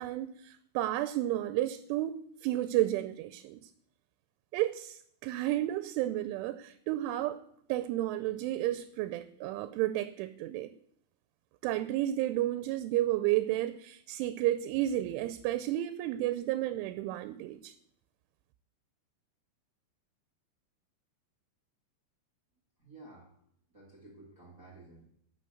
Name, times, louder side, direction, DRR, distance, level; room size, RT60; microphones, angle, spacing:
voice 1, 0.0-2.1 2.4-3.6 4.5-7.4 7.7-10.7 11.6-17.7, right 14 dB, 90° right, 3.1 m, -32 dB
voice 2, 22.8-23.3 23.7-25.1, right 2 dB, 45° right, 1.1 m, -53 dB
11.5 x 6.3 x 7.8 m
omnidirectional pair, 5.4 m